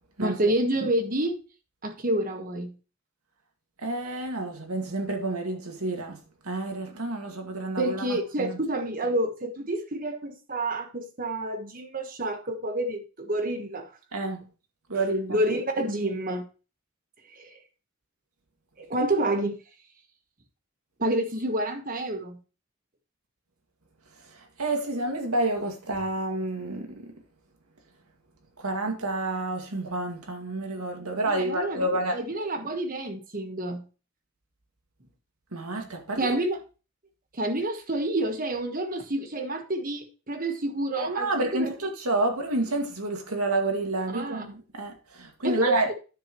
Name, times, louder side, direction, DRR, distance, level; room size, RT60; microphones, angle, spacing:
voice 1, 0.2-1.3 1.8-2.8 7.8-13.9 14.9-15.0 15.3-16.5 17.3-17.5 18.8-19.6 21.0-22.4 31.3-33.9 36.2-36.6 37.3-41.8 44.1-44.5 45.4-45.9, right 1 dB, 40° right, 1.3 m, -28 dB
voice 2, 3.8-6.2 6.4-8.6 14.1-14.4 14.9-15.4 24.6-27.1 28.6-32.2 35.5-36.4 41.0-45.9, right 2 dB, 80° right, 2.0 m, -29 dB
9.9 x 7.3 x 3.1 m
head